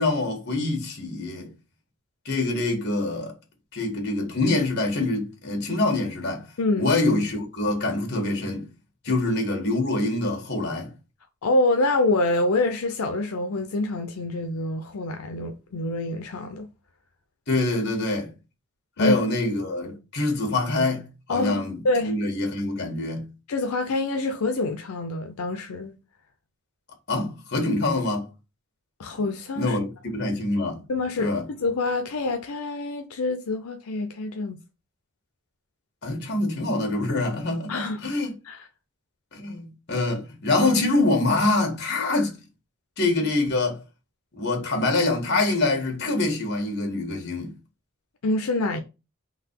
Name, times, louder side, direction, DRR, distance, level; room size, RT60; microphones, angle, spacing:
voice 1, 0.0-1.5 2.2-3.3 3.7-6.5 6.8-8.7 9.0-10.9 17.5-18.3 19.0-23.3 27.1-28.3 29.6-30.8 31.2-31.5 36.0-38.4 39.3-42.3 43.0-43.8 44.4-47.5, left 2 dB, 50° left, 1.6 m, -25 dB
voice 2, 6.6-6.9 9.1-9.2 11.4-16.7 19.0-19.2 21.3-22.2 23.5-25.9 29.0-29.8 30.9-34.6 37.7-38.1 38.4-38.7 48.2-48.8, left 2 dB, 85° left, 0.6 m, -26 dB
3.9 x 2.8 x 4.6 m
head